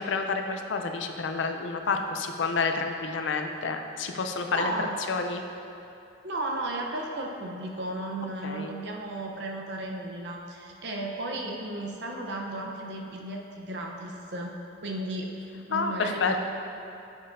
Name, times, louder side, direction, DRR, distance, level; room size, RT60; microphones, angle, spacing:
voice 1, 0.0-4.7 5.1-5.4 8.4-8.7 15.7-16.3, left 4 dB, 80° left, 5 dB, 0.5 m, -29 dB
voice 2, 4.5-5.0 6.2-15.3 15.7-16.5, right 2 dB, 65° right, 0 dB, 0.7 m, -34 dB
8.2 x 7.2 x 2.6 m, 2.8 s
head